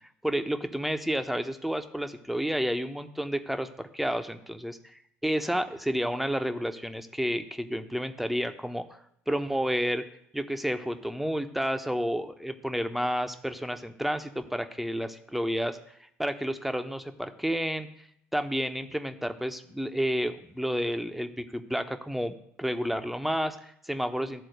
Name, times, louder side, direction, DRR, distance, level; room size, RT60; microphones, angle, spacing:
voice 1, 0.2-8.8 9.3-10.0 10.3-15.8 16.2-17.9 18.3-24.4, equal, ahead, 7 dB, 0.9 m, -30 dB
12.0 x 4.2 x 6.5 m, 0.72 s
figure-of-eight pair, 60°, 7 cm